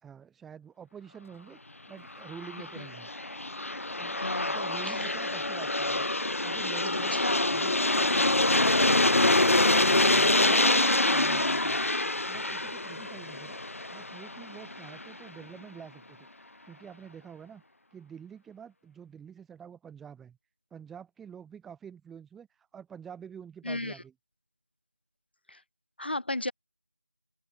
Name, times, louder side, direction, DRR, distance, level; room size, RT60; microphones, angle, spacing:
voice 1, 0.0-3.1 4.0-4.2 4.4-6.1 6.4-7.2 9.6-11.8 12.3-17.6 17.9-20.4 20.7-24.1, right 7 dB, ahead, 2.5 m, -48 dB
Aircraft, 2.2-15.0, left 2 dB, 70° left, 0.8 m, -26 dB
voice 2, 4.2-4.6 4.9-5.1 7.1-7.6 23.6-23.9 25.5-25.6 26.0-26.5, left 2 dB, 45° left, 3.7 m, -35 dB
open air
figure-of-eight pair, 180°, 8 cm